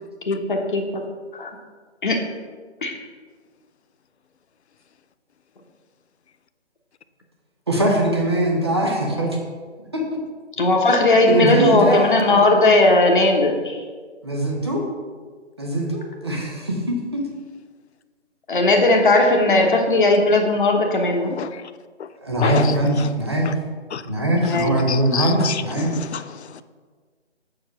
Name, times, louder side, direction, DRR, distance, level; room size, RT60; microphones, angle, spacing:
voice 1, 0.3-1.0 1.3-1.5 2.0-2.2 2.8-3.0 10.6-13.8 18.5-21.4 24.4-24.8, left 2 dB, 45° left, 2 dB, 1.2 m, -17 dB
voice 2, 7.7-9.4 9.9-10.0 11.3-12.4 14.2-14.9 15.6-17.3 22.2-23.5 24.0-25.9, right 1 dB, 25° right, -1 dB, 0.8 m, -21 dB
voice 3, 21.3-21.6 22.0-22.1 22.4-23.1 23.4-23.5 23.9-24.0 24.5-24.6 24.9-26.6, left 7 dB, 65° left, 13 dB, 0.5 m, -28 dB
7.6 x 4.9 x 5.7 m, 1.5 s
figure-of-eight pair, 170°, 35 cm